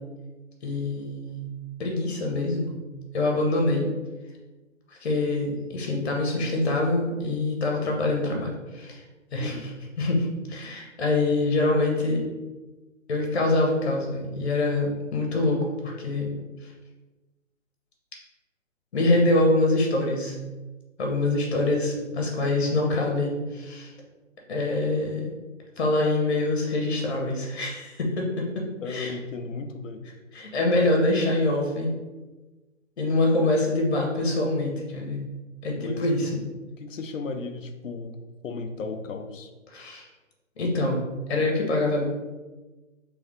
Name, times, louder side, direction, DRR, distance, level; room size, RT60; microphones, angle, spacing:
voice 1, 0.6-1.4 1.8-2.7 3.1-3.9 5.0-9.0 9.3-9.6 10.0-12.2 13.1-16.3 18.9-20.4 21.0-23.9 24.5-25.3 25.8-29.1 30.3-31.9 33.0-35.2 35.6-36.3 39.7-40.1 40.6-42.1, left 2 dB, 55° left, 0 dB, 1.3 m, -25 dB
voice 2, 9.4-9.7 28.8-30.0 35.8-36.3 36.8-39.5, left 4 dB, 75° left, 7 dB, 0.7 m, -35 dB
3.4 x 3.3 x 3.5 m, 1.2 s
hypercardioid pair, 155°, 39 cm